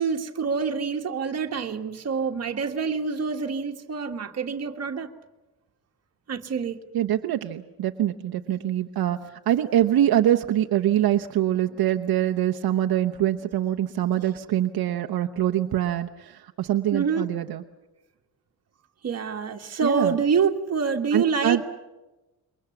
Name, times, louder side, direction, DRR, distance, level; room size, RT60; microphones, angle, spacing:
voice 1, 0.0-5.1 6.3-6.8 14.1-14.3 16.9-17.3 19.0-21.7, right 5 dB, 40° right, 1.6 m, -26 dB
voice 2, 6.9-9.2 9.5-17.6 19.8-20.1 21.1-21.6, right 12 dB, 70° right, 1.0 m, -24 dB
27.5 x 23.0 x 7.2 m
cardioid pair, 155°, 38 cm